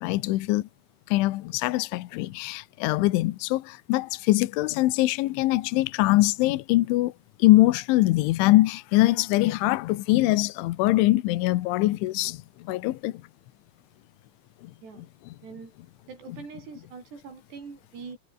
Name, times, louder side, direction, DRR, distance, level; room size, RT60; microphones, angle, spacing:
voice 1, 0.0-0.6 1.1-7.1 7.4-12.4 12.6-13.1 15.0-15.1 16.3-16.4, left 18 dB, 80° left, 3.4 m, -23 dB
voice 2, 15.4-15.7 16.1-18.2, right 5 dB, 60° right, 8.6 m, -43 dB
omnidirectional pair, 5.6 m